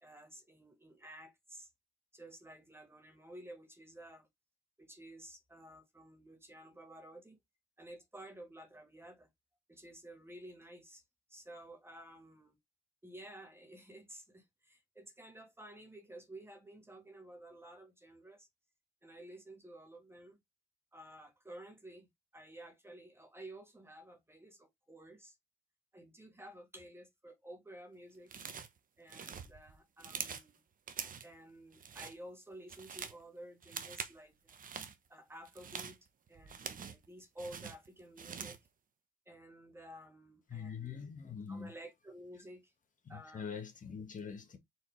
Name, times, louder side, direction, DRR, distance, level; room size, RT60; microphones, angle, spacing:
voice 1, 0.0-1.7 2.1-4.3 4.8-7.4 7.8-9.3 9.7-11.0 11.3-12.6 13.0-18.5 19.0-20.4 20.9-25.3 25.9-28.3 29.0-30.6 31.2-34.6 35.1-36.0 36.3-38.6 39.3-41.1 41.5-42.7 43.1-43.5, right 1 dB, 10° right, 1.3 m, -53 dB
sound 1, 28.3-28.8 29.1-30.5 30.9-31.3 31.7-32.2 32.5-33.2 33.6-34.2 34.5-34.9 35.4-37.1 37.4-38.7, right 7 dB, 45° right, 0.8 m, -44 dB
voice 2, 40.5-41.7 43.0-44.6, left 6 dB, 40° left, 1.6 m, -44 dB
4.5 x 3.7 x 3.2 m
cardioid pair, 90°, 20 cm